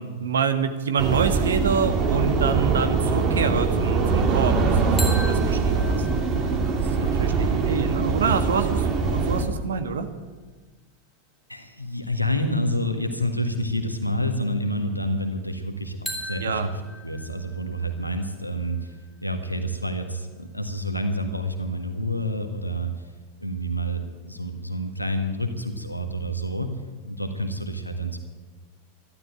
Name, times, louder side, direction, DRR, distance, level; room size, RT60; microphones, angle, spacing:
voice 1, 0.0-6.1 6.8-10.1 16.4-16.7, right 6 dB, 65° right, 9 dB, 1.5 m, -27 dB
sound 1, 1.0-9.4, right 4 dB, 35° right, 2.3 m, -22 dB
sound 2, 5.0-8.8 16.0-19.9, left 1 dB, 5° left, 2.7 m, -40 dB
voice 2, 11.5-16.6 17.0-22.9 23.4-26.8 27.0-28.2, equal, 90° left, 6 dB, 1.7 m, -28 dB
12.5 x 12.0 x 9.1 m, 1.3 s
figure-of-eight pair, 90°, 0 cm